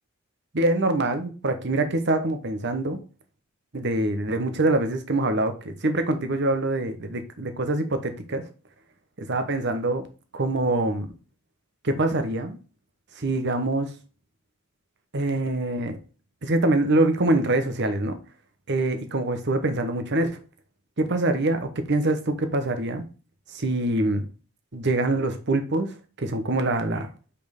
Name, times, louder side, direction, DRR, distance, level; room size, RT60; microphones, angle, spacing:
voice 1, 0.5-3.0 3.7-8.4 9.2-10.1 10.3-11.1 11.8-12.6 13.2-13.9 15.1-16.0 16.4-18.2 18.7-20.4 21.0-23.0 23.5-24.3 24.7-27.1, right 2 dB, 55° right, 1.0 m, -24 dB
5.4 x 4.3 x 5.2 m
head